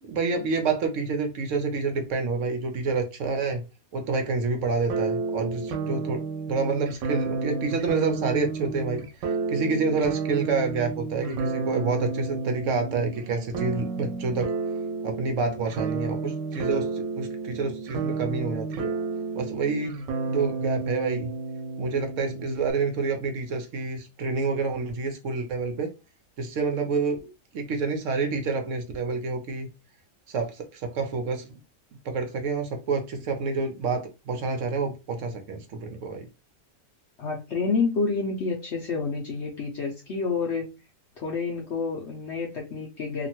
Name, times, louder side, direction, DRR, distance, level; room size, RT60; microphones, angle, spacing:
voice 1, 0.0-3.6 3.9-6.2 6.5-14.5 15.0-19.0 19.3-21.3 21.8-25.9 26.4-29.7 30.3-31.6 32.0-36.3, right 4 dB, 65° right, 0.8 m, -28 dB
sound 1, 4.9-22.7, right 4 dB, 90° right, 1.3 m, -31 dB
voice 2, 37.2-40.7 41.2-43.3, left 4 dB, 60° left, 0.7 m, -28 dB
2.9 x 2.5 x 2.8 m
omnidirectional pair, 1.8 m